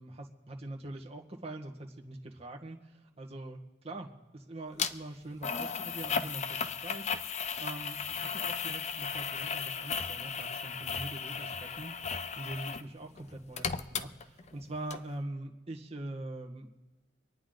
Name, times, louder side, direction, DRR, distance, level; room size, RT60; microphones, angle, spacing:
voice 1, 0.0-7.3 7.6-16.8, right 1 dB, 35° right, 0 dB, 1.6 m, -43 dB
sound 1, 4.8-4.9 5.4-12.9 13.2-14.6 14.9-15.0, left 6 dB, 40° left, 0.6 m, -35 dB
25.5 x 9.6 x 3.9 m, 1.2 s
head